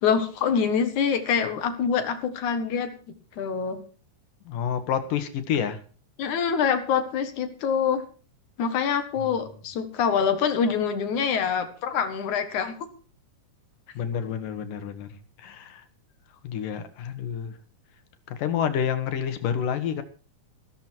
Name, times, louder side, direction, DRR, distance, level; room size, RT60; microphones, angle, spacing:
voice 1, 0.0-2.9 3.4-3.8 6.2-8.0 8.6-12.9, left 6 dB, 70° left, 9 dB, 2.9 m, -25 dB
voice 2, 4.5-5.8 14.0-15.8 16.4-17.5 18.3-20.0, left 8 dB, 90° left, 9 dB, 3.2 m, -29 dB
14.5 x 13.5 x 4.6 m, 0.38 s
omnidirectional pair, 3.7 m